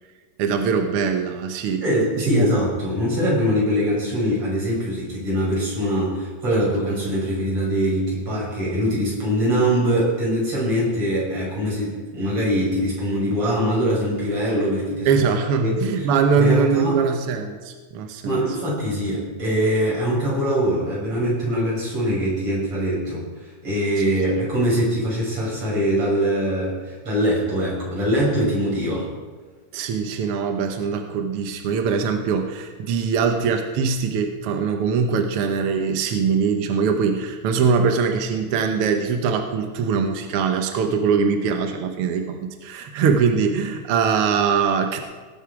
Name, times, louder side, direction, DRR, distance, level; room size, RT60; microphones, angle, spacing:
voice 1, 0.4-1.8 2.2-2.5 15.0-18.4 24.0-24.1 29.7-45.0, right 5 dB, 70° right, 5 dB, 1.4 m, -22 dB
voice 2, 1.8-15.1 15.6-16.1 16.4-16.9 18.2-29.1, equal, 45° right, -5 dB, 6.2 m, -23 dB
18.5 x 8.1 x 4.8 m, 1.4 s
omnidirectional pair, 3.7 m